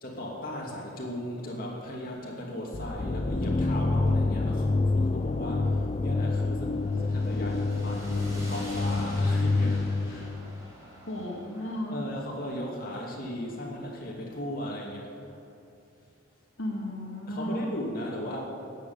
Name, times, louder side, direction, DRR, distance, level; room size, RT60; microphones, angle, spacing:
voice 1, 0.0-10.4 11.9-15.1 17.3-18.4, left 1 dB, 45° left, -3 dB, 2.7 m, -37 dB
sound 1, 2.7-10.6, left 3 dB, 30° left, 0.4 m, -27 dB
sound 2, 6.6-14.9, right 1 dB, 15° right, 4.1 m, -45 dB
voice 2, 11.1-12.0 16.6-17.7, equal, 75° left, -2 dB, 2.0 m, -34 dB
13.0 x 8.0 x 9.6 m, 2.7 s
head